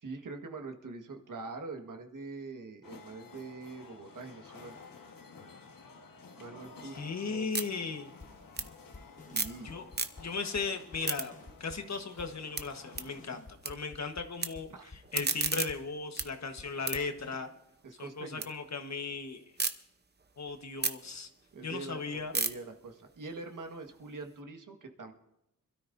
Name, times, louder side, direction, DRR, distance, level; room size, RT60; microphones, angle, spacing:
voice 1, 0.0-4.8 6.4-7.5 9.3-9.7 14.7-14.9 17.8-18.5 21.5-25.1, right 3 dB, 65° right, 5 dB, 1.6 m, -44 dB
sound 1, 2.8-13.3, left 4 dB, 75° left, 1.5 m, -53 dB
sound 2, 6.7-9.6 9.9-10.5 10.8-13.7 14.0-14.5 14.9-18.5 18.9-19.7 20.2-24.3, right 4 dB, 30° right, 0.8 m, -37 dB
voice 2, 6.8-8.1 9.6-9.8 10.2-11.3 11.6-17.5 18.0-19.4 20.4-21.3 21.6-22.3, left 4 dB, 50° left, 6 dB, 1.3 m, -37 dB
sound 3, 8.2-17.4, left 3 dB, 25° left, 1.0 m, -52 dB
26.5 x 13.0 x 2.7 m, 0.88 s
wide cardioid pair, 115°, 34 cm